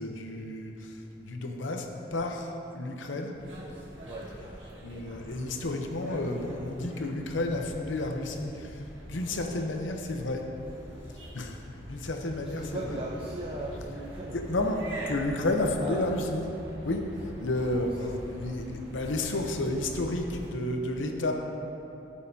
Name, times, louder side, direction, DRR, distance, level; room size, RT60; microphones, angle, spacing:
voice 1, 0.0-3.4 4.8-10.5 11.3-13.0 14.3-16.4 16.8-21.3, left 2 dB, 90° left, 3 dB, 0.8 m, -31 dB
sound 1, 3.3-20.5, equal, 90° right, 1.7 m, -44 dB
voice 2, 12.1-14.4 15.8-16.0 17.7-18.1, right 1 dB, 30° right, -5 dB, 0.7 m, -38 dB
14.0 x 6.5 x 2.8 m, 2.9 s
head